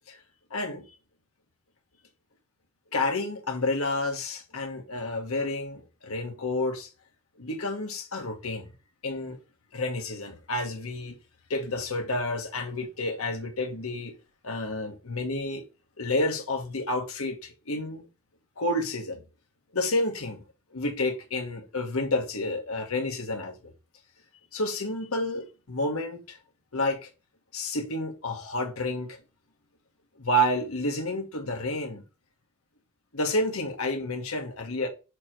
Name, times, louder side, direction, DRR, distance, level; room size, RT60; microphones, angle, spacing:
voice 1, 0.5-1.0 2.9-6.9 7.4-8.7 9.0-9.4 9.7-11.2 11.5-14.1 14.4-15.6 16.0-18.1 18.6-19.2 19.7-20.4 20.7-23.7 24.5-26.4 26.7-27.1 27.5-29.2 30.2-32.0 33.1-34.9, left 1 dB, 80° left, 1.5 m, -30 dB
6.8 x 3.1 x 4.9 m
head